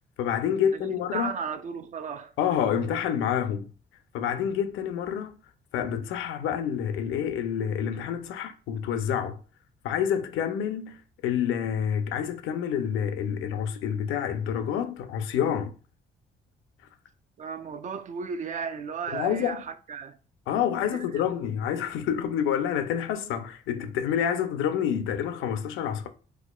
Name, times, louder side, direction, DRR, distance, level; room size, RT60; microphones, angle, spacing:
voice 1, 0.2-1.3 2.4-3.7 4.1-5.4 5.7-9.4 9.8-15.7 19.1-19.6 20.5-26.1, left 8 dB, 90° left, 0.5 m, -28 dB
voice 2, 0.7-2.3 17.4-20.2 20.8-21.4, right 6 dB, 40° right, 0.4 m, -35 dB
4.3 x 2.4 x 2.3 m
cardioid pair, 90°, 20 cm